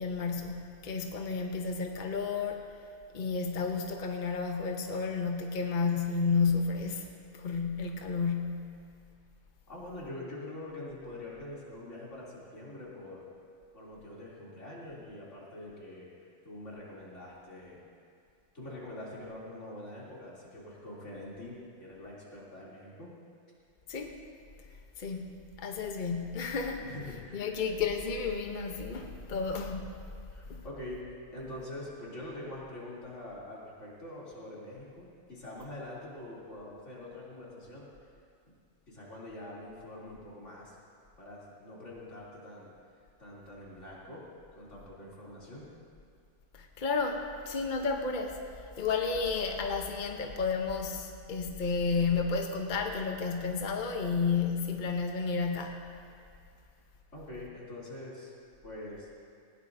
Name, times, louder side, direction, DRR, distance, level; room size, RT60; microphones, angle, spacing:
voice 1, 0.0-2.7 3.1-8.8 23.9-24.2 25.0-26.9 27.3-29.9 30.5-30.6 46.5-48.4 48.8-55.9, left 5 dB, 45° left, 3 dB, 0.9 m, -32 dB
voice 2, 9.7-13.2 13.7-16.1 16.4-17.8 18.5-23.1 26.8-27.6 30.3-31.0 31.3-37.9 38.5-38.6 38.9-40.7 41.2-42.7 43.2-44.2 44.5-45.7 57.1-58.3 58.6-59.1, left 1 dB, 80° left, -7 dB, 3.4 m, -44 dB
19.0 x 17.0 x 2.6 m, 2.3 s
omnidirectional pair, 1.2 m